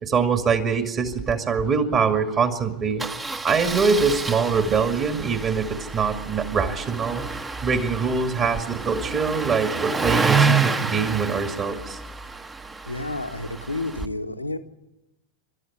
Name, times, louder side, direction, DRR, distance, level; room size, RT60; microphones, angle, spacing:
voice 1, 0.0-3.1 3.4-7.2 7.6-12.0, right 5 dB, 30° right, 7 dB, 2.3 m, -23 dB
Engine starting, 1.1-1.3 1.6-1.7 1.9-2.1 3.0-14.1, right 4 dB, 15° right, 1.2 m, -28 dB
voice 2, 12.8-14.6, left 2 dB, 85° left, 6 dB, 1.5 m, -30 dB
28.0 x 13.0 x 9.9 m, 0.98 s
figure-of-eight pair, 90°, 0 cm